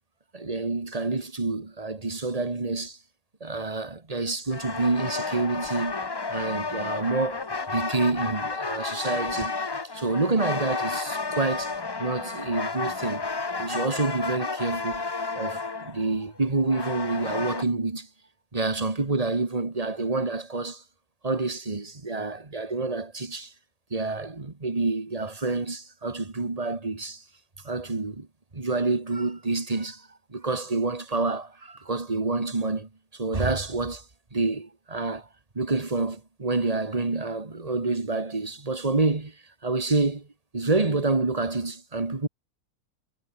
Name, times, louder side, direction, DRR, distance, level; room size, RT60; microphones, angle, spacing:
voice 1, 0.3-3.0 3.4-6.0 6.3-9.6 9.9-11.7 12.0-13.2 13.6-15.0 15.4-18.1 18.5-20.8 21.2-23.5 23.9-27.2 27.6-28.3 28.5-34.0 34.3-35.3 35.6-39.3 39.6-40.3 40.5-42.3, right 3 dB, 25° right, 1.9 m, -28 dB
sound 1, 4.5-17.6, left 4 dB, 25° left, 0.6 m, -32 dB
omnidirectional pair, 1.5 m